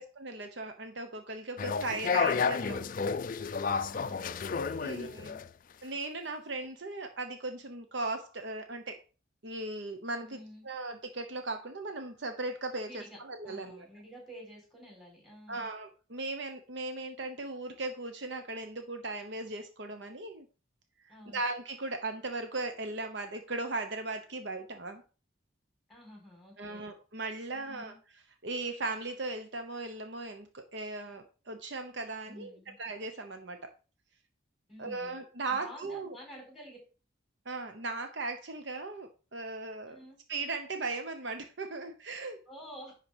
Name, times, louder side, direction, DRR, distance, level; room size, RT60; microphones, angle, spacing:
voice 1, 0.0-2.9 3.4-3.6 4.8-5.3 5.8-9.0 9.4-10.4 10.6-13.9 15.5-20.5 21.0-25.0 26.6-27.9 28.4-32.5 32.8-33.7 34.8-36.2 37.4-40.0 40.3-42.4, right 2 dB, 60° right, 6 dB, 0.9 m, -38 dB
sound 1, 1.6-5.5, left 5 dB, 40° left, 0.4 m, -31 dB
voice 2, 2.6-3.0 3.9-5.4 10.2-10.6 12.8-13.2 13.4-15.7 21.1-21.4 25.9-26.9 27.5-28.0 32.2-32.8 34.7-35.2 35.5-36.8 39.9-40.2 42.5-43.0, equal, ahead, -1 dB, 4.5 m, -50 dB
10.5 x 4.4 x 5.0 m, 0.35 s
head